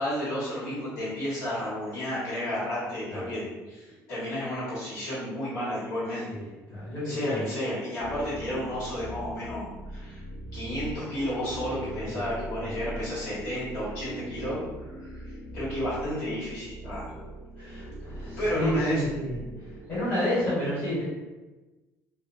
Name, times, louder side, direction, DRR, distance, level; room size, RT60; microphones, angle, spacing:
voice 1, 0.0-6.2 7.0-9.6 9.9-10.2 10.5-14.6 15.0-15.2 15.5-17.1 18.4-19.0, equal, 70° left, -10 dB, 1.4 m, -32 dB
voice 2, 6.3-7.4 12.0-12.3 12.6-12.7 17.6-19.3 19.9-21.0, left 1 dB, 35° left, -10 dB, 1.4 m, -30 dB
sound 1, 8.0-20.1, right 1 dB, 40° right, 0.5 m, -40 dB
2.6 x 2.2 x 2.6 m, 1.2 s
cardioid pair, 145°, 6 cm